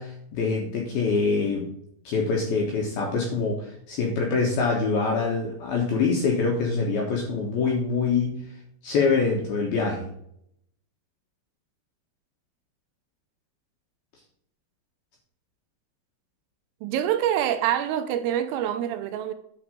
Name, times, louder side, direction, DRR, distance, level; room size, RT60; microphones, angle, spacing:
voice 1, 0.0-1.7 2.1-8.4 8.8-10.0, left 4 dB, 70° left, 2.4 m, -25 dB
voice 2, 16.8-19.3, right 10 dB, 85° right, 3.3 m, -25 dB
9.3 x 4.7 x 5.2 m
omnidirectional pair, 6.0 m